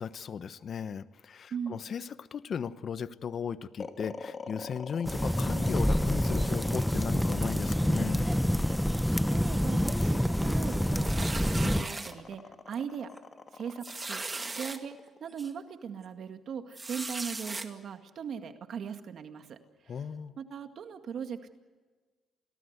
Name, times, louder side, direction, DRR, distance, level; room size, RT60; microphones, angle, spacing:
voice 1, 0.0-8.3 19.9-20.3, left 7 dB, 55° left, 14 dB, 1.0 m, -37 dB
voice 2, 1.5-1.8 9.1-13.1 13.5-19.6 20.4-21.6, right 7 dB, 60° right, 7 dB, 2.0 m, -39 dB
sound 1, 3.8-16.1, left 4 dB, 40° left, 2.6 m, -44 dB
sound 2, 5.1-11.8, equal, 5° left, 1.0 m, -27 dB
sound 3, 11.0-12.1 12.7-12.9 13.2-13.3 13.8-14.8 15.4-15.5 16.7-17.7, right 3 dB, 25° right, 2.3 m, -37 dB
29.0 x 19.0 x 8.2 m, 1.4 s
cardioid pair, 90°, 0 cm